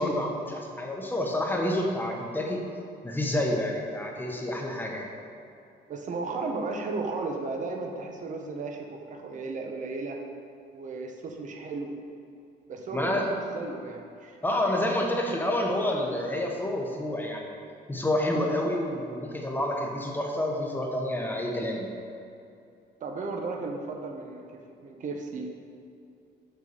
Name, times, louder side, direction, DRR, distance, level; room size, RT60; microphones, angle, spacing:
voice 1, 0.0-2.6 3.0-5.1 12.9-13.3 14.4-17.5 17.9-21.9, left 1 dB, 10° left, 0 dB, 1.1 m, -28 dB
voice 2, 5.9-10.2 10.7-11.9 12.7-14.4 23.0-25.5, right 3 dB, 45° right, 2 dB, 1.0 m, -35 dB
6.9 x 5.8 x 6.7 m, 2.5 s
cardioid pair, 130°, 18 cm